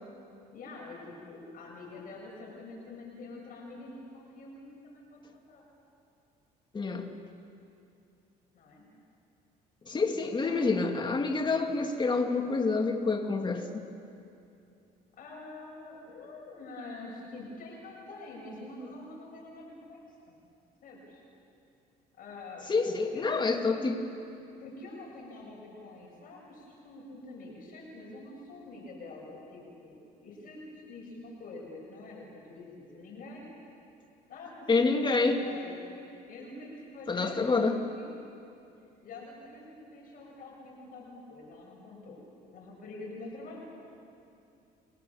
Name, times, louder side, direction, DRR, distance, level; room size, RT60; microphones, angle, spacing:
voice 1, 0.5-5.6 8.5-8.9 10.2-10.9 15.1-20.5 20.8-21.2 22.1-22.7 23.1-23.3 23.7-23.8 24.6-33.5 34.3-35.8 36.3-38.2 39.0-42.2 42.5-43.6, left 2 dB, 55° left, -2 dB, 7.2 m, -46 dB
voice 2, 6.7-7.1 9.9-13.9 22.7-24.0 34.7-35.4 37.1-37.8, left 3 dB, 25° left, 4 dB, 2.6 m, -27 dB
30.0 x 25.0 x 7.3 m, 2.6 s
cardioid pair, 110°, 17 cm